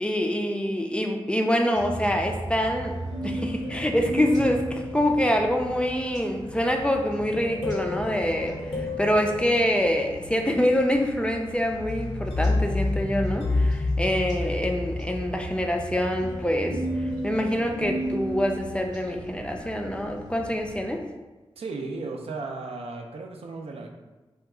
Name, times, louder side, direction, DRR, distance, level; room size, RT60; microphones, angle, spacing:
voice 1, 0.0-2.9 3.2-16.8 17.2-21.0, equal, 10° left, 2 dB, 0.3 m, -25 dB
sound 1, 1.8-21.0, right 1 dB, 40° right, 0.8 m, -40 dB
sound 2, 3.1-5.7 7.3-10.3 11.8-19.1, left 2 dB, 70° left, 0.6 m, -30 dB
voice 2, 21.6-23.9, right 3 dB, 75° right, 2 dB, 0.4 m, -35 dB
2.8 x 2.3 x 3.5 m, 1.2 s
wide cardioid pair, 85°, 10 cm